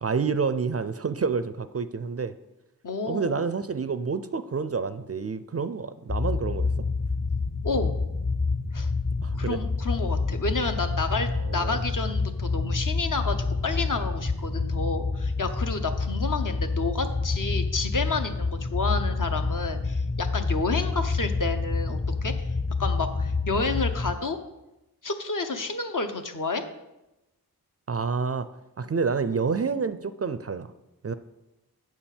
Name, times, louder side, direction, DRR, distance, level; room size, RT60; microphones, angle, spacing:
voice 1, 0.0-2.3 3.1-6.7 9.2-9.6 11.5-11.8 27.9-28.5 28.8-30.7 31.0-31.1, right 5 dB, 40° right, 12 dB, 0.4 m, -28 dB
voice 2, 2.8-3.4 7.6-7.9 8.7-8.9 9.4-22.3 22.8-24.4 25.0-26.7, left 3 dB, 55° left, 6 dB, 0.9 m, -30 dB
sound 1, 6.1-24.1, left 3 dB, 25° left, 0.5 m, -28 dB
8.1 x 4.4 x 7.1 m, 0.95 s
wide cardioid pair, 60°, 38 cm